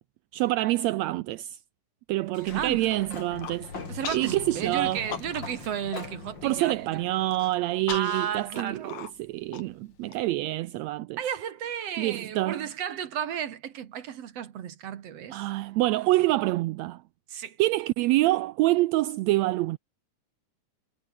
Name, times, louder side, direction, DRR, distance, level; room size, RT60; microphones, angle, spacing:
voice 1, 0.3-1.5 2.1-3.7 4.1-5.0 6.4-11.2 12.0-12.6 15.3-17.0 17.6-19.8, right 17 dB, 80° right, 1.6 m, -26 dB
Sliding door, 2.3-7.9, left 4 dB, 35° left, 4.3 m, -42 dB
voice 2, 2.4-2.9 3.9-7.1 7.9-9.0 11.2-15.5 17.3-17.6, right 9 dB, 60° right, 2.2 m, -33 dB
Human voice, 3.2-3.6 4.0-4.4 4.7-5.6 5.9-6.0 6.4-6.8 7.3-10.2, left 8 dB, 65° left, 3.4 m, -39 dB
omnidirectional pair, 3.6 m